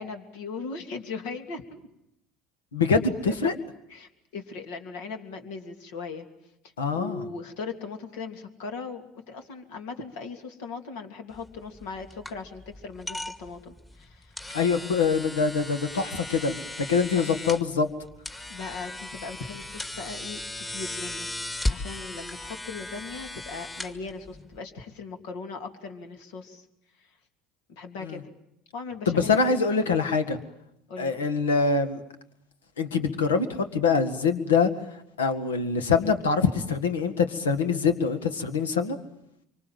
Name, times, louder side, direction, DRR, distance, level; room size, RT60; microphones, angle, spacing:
voice 1, 0.0-1.9 2.9-3.5 3.9-6.3 6.9-14.4 17.1-17.3 18.5-26.7 27.0-27.2 27.7-28.3 28.7-29.8 30.9-31.1, left 4 dB, 75° left, 5 dB, 3.0 m, -39 dB
voice 2, 2.7-3.5 6.8-7.2 14.5-17.9 28.0-28.2 29.1-30.4 31.0-32.0 32.8-34.7 35.2-39.0, left 5 dB, 90° left, 9 dB, 1.8 m, -24 dB
sound 1, 11.3-24.6, left 1 dB, 20° left, 2.4 m, -37 dB
26.0 x 25.0 x 7.6 m, 0.82 s
hypercardioid pair, 70°, 0 cm